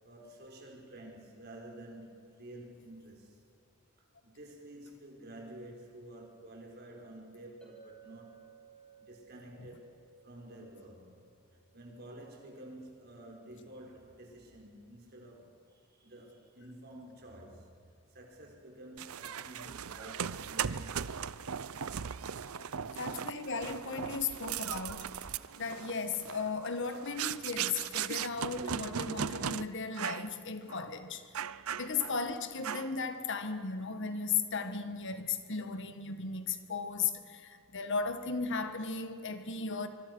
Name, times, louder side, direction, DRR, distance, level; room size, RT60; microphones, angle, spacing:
voice 1, 0.0-3.4 4.2-8.5 9.0-11.3 11.7-17.7 18.1-21.1 22.8-23.1, right 1 dB, 50° right, 5.5 m, -50 dB
Chink clink, 7.6-12.0, right 8 dB, 5° left, 4.1 m, -59 dB
sound 1, 19.0-29.6 29.9-30.3 30.7-30.8 31.3-32.2 32.6-33.0, right 8 dB, 80° right, 0.7 m, -38 dB
voice 2, 23.0-25.1 25.6-31.2 31.8-39.9, left 5 dB, 60° left, 1.6 m, -36 dB
24.5 x 24.5 x 6.3 m
head